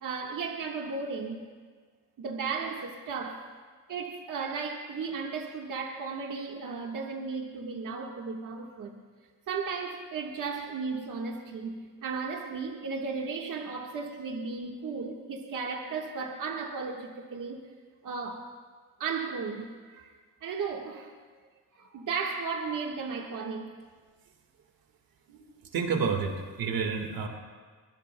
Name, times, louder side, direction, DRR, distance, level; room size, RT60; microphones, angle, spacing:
voice 1, 0.0-1.4 2.2-3.5 3.9-9.0 9.5-17.7 18.0-18.5 19.0-20.1 20.4-21.1 21.7-23.8, right 5 dB, 65° right, 1 dB, 1.6 m, -35 dB
voice 2, 25.7-27.3, right 5 dB, 80° right, 4 dB, 1.8 m, -29 dB
24.0 x 22.5 x 2.3 m, 1.5 s
cardioid pair, 90°, 35 cm